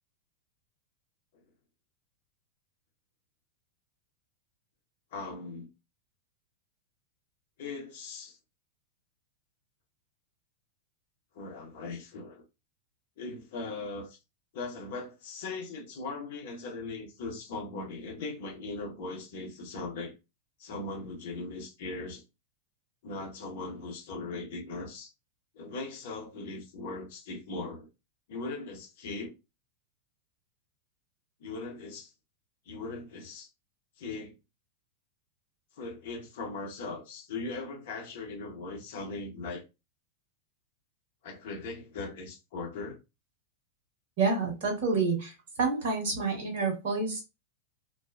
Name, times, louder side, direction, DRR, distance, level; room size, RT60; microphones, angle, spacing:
voice 1, 5.1-5.7 7.6-8.4 11.3-12.4 13.2-14.2 14.5-20.1 20.6-22.2 23.0-25.1 25.5-27.9 28.3-29.3 31.4-32.1 32.7-33.5 34.0-34.3 35.8-39.6 41.2-43.0, left 3 dB, 55° left, 0.9 m, -39 dB
voice 2, 44.2-47.2, right 4 dB, 50° right, 1.0 m, -28 dB
2.4 x 2.2 x 2.3 m
figure-of-eight pair, 90°, 0 cm